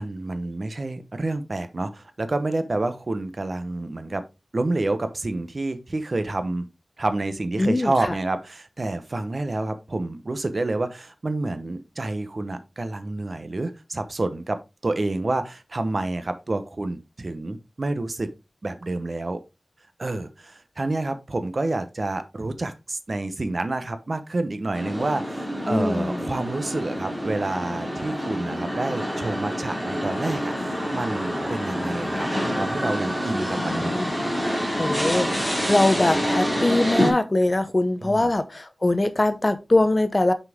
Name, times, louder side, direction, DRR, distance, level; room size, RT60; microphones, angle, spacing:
voice 1, 0.0-4.2 4.5-6.7 7.0-18.3 18.6-19.4 20.0-32.3 32.6-34.0 38.0-38.3, right 2 dB, 50° right, 1.0 m, -28 dB
voice 2, 7.6-8.2 25.7-26.3 33.6-34.1 34.8-40.3, left 2 dB, 30° left, 0.8 m, -22 dB
sound 1, 24.7-37.1, equal, 5° right, 2.7 m, -27 dB
6.1 x 5.7 x 3.5 m
wide cardioid pair, 85°, 0 cm